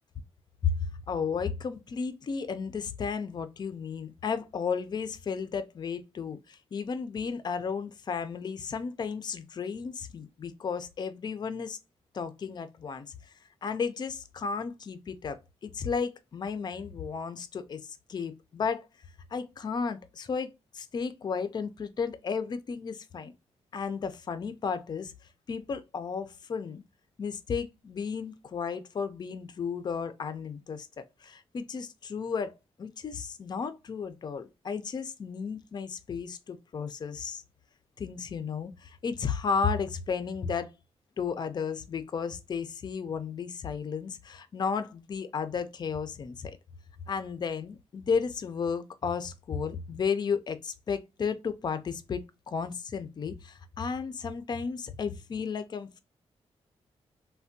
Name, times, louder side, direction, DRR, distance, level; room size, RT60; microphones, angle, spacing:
voice 1, 1.1-11.8 12.1-13.1 13.6-17.8 18.1-18.9 19.3-23.3 23.7-25.1 25.5-26.8 27.2-37.4 38.0-40.7 41.2-46.5 47.1-52.2 52.5-56.0, left 6 dB, 40° left, 0.4 m, -33 dB
3.3 x 2.1 x 2.5 m
wide cardioid pair, 120°, 11 cm